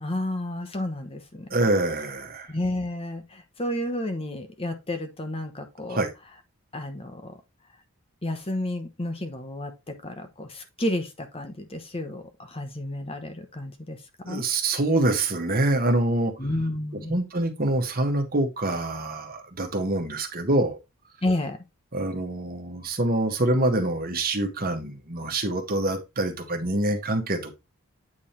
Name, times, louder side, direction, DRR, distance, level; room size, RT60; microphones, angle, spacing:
voice 1, 0.0-1.5 2.5-6.0 6.7-7.3 8.2-14.0 14.2-14.5 16.4-17.1 21.2-21.6, left 1 dB, 25° left, 1.0 m, -31 dB
voice 2, 1.5-2.5 5.9-6.1 14.2-16.3 17.1-20.8 21.9-27.6, right 2 dB, 40° right, 1.4 m, -25 dB
8.6 x 3.5 x 4.3 m
head